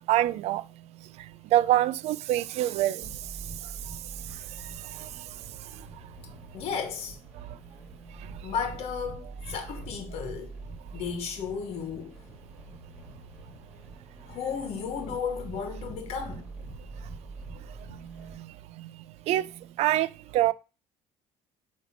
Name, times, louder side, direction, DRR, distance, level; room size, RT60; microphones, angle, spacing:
voice 1, 0.1-0.6 1.5-3.1 4.9-5.1 18.2-18.5 18.8-18.9 19.3-19.5 19.8-20.5, right 14 dB, 60° right, 0.4 m, -25 dB
sound 1, 3.0-18.4, right 3 dB, 5° right, 3.3 m, -45 dB
voice 2, 6.5-7.2 8.4-10.5 10.9-12.2 14.3-16.5, left 6 dB, 55° left, 1.2 m, -34 dB
8.1 x 2.9 x 5.7 m
cardioid pair, 155°, 12 cm